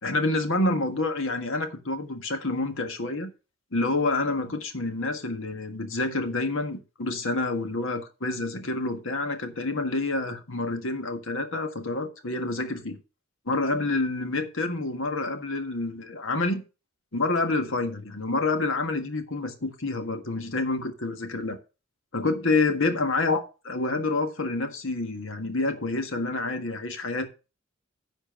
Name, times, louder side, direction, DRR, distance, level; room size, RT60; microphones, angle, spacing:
voice 1, 0.0-3.3 3.7-13.0 13.5-16.6 17.1-21.6 22.1-27.2, left 2 dB, 65° left, 1.6 m, -28 dB
10.5 x 4.4 x 6.6 m
head